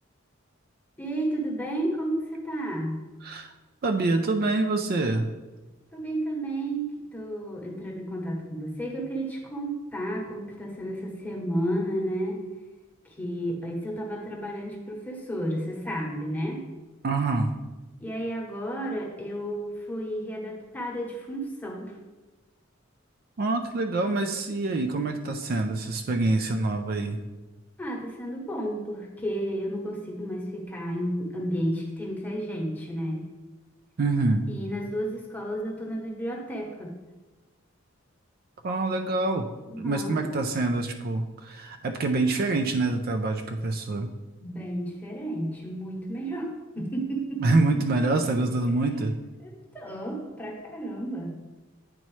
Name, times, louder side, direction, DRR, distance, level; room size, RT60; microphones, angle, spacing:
voice 1, 1.0-3.0 5.9-12.4 13.0-16.6 18.0-21.9 27.8-33.3 34.5-37.0 39.7-40.3 44.4-47.8 49.4-51.4, right 1 dB, 10° left, -1 dB, 1.0 m, -32 dB
voice 2, 3.2-3.5 3.8-5.3 17.0-17.5 23.4-27.2 34.0-34.5 38.6-39.5 39.8-44.1 47.4-49.1, right 2 dB, 50° right, 6 dB, 0.4 m, -26 dB
9.0 x 4.2 x 3.1 m, 1.2 s
head